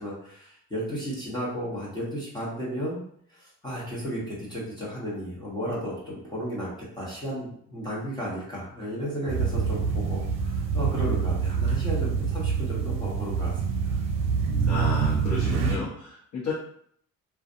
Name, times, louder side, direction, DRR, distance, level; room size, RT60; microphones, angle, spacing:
voice 1, 0.0-3.0 3.3-6.7 6.9-13.9, equal, 15° left, -7 dB, 1.0 m, -33 dB
sound 1, 9.3-15.8, right 6 dB, 60° right, 0.5 m, -26 dB
voice 2, 14.7-16.5, left 3 dB, 65° left, -7 dB, 0.9 m, -32 dB
2.5 x 2.2 x 2.6 m, 0.64 s
cardioid pair, 90°, 30 cm